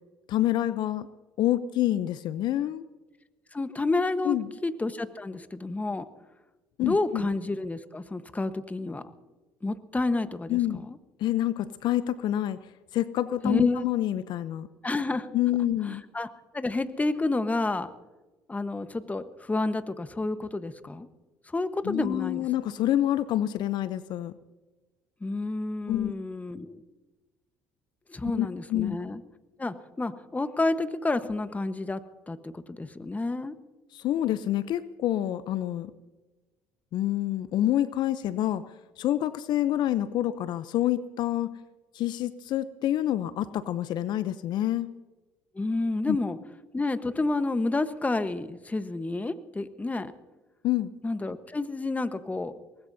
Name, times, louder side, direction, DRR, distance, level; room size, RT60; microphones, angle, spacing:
voice 1, 0.3-1.1 1.4-2.8 4.2-4.5 6.8-7.3 10.5-10.8 11.2-12.6 12.9-14.7 15.3-16.0 21.8-24.3 25.9-26.1 28.3-29.0 33.9-35.9 36.9-38.6 39.0-41.5 41.9-44.9 46.1-46.2 50.6-50.9, left 13 dB, 60° left, 14 dB, 0.7 m, -27 dB
voice 2, 3.5-6.1 6.8-9.0 9.6-11.0 13.4-13.9 14.8-15.3 15.8-16.3 16.5-17.9 18.5-21.1 21.5-22.5 25.2-26.8 28.1-29.2 29.6-32.0 32.3-33.5 45.5-46.4 46.7-50.1 51.0-52.5, left 2 dB, 15° left, 11 dB, 1.2 m, -30 dB
23.5 x 19.0 x 2.8 m, 1.2 s
hypercardioid pair, 65°, 8 cm